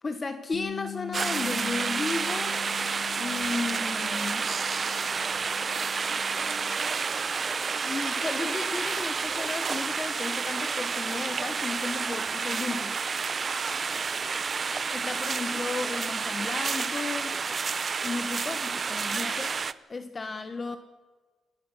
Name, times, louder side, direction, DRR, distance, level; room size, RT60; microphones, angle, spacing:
voice 1, 0.0-2.6 3.2-4.5 7.8-13.0 14.9-17.4 18.0-19.6 19.9-20.8, left 3 dB, 25° left, 9 dB, 1.1 m, -34 dB
Bass guitar, 0.5-6.8, left 12 dB, 90° left, 2.5 m, -43 dB
sound 1, 1.1-19.7, right 5 dB, 35° right, 0.7 m, -30 dB
28.5 x 18.5 x 5.7 m, 1.4 s
cardioid pair, 140°, 0 cm